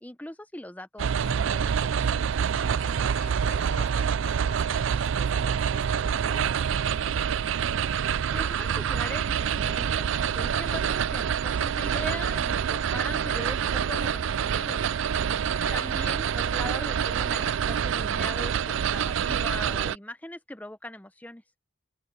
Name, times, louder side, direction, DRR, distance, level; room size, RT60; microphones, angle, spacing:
voice 1, 0.0-1.9 8.3-10.1 10.3-14.8 15.7-21.4, left 1 dB, 10° left, 0.7 m, -40 dB
sound 1, 1.0-20.0, right 7 dB, 75° right, 0.4 m, -26 dB
voice 2, 2.7-7.6 15.5-16.0, left 3 dB, 30° left, 1.3 m, -47 dB
head